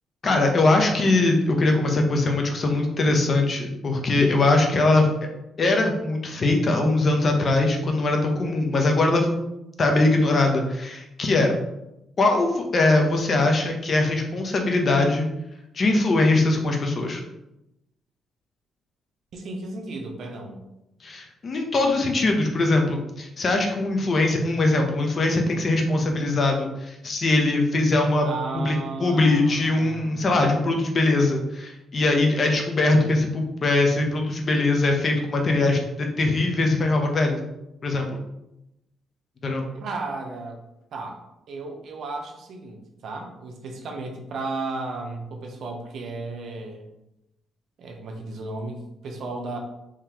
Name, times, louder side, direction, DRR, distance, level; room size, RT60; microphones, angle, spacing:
voice 1, 0.2-5.1 5.6-9.3 9.8-11.5 12.2-15.3 15.7-17.2 21.0-28.3 28.5-37.4 37.8-38.1 39.4-39.6, left 2 dB, 45° left, 2 dB, 0.7 m, -21 dB
voice 2, 19.3-20.6 28.2-30.3 39.7-40.6 40.9-46.9 47.8-49.6, right 3 dB, 65° right, 3 dB, 0.7 m, -34 dB
3.7 x 3.1 x 2.9 m, 0.88 s
cardioid pair, 90°, 0 cm